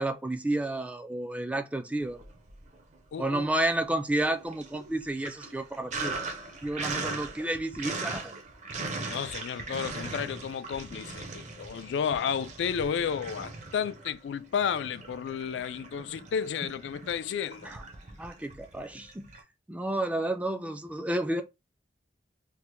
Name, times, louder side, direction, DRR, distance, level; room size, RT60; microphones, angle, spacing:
voice 1, 0.0-2.2 3.2-6.3 6.6-8.3 17.6-17.8 18.2-19.3 19.7-21.4, right 1 dB, 10° right, 0.3 m, -31 dB
Sink (filling or washing), 2.1-3.0 3.3-19.4, right 3 dB, 40° right, 0.6 m, -40 dB
voice 2, 3.1-3.5 9.1-17.7, left 7 dB, 85° left, 0.3 m, -32 dB
3.2 x 2.1 x 3.0 m
head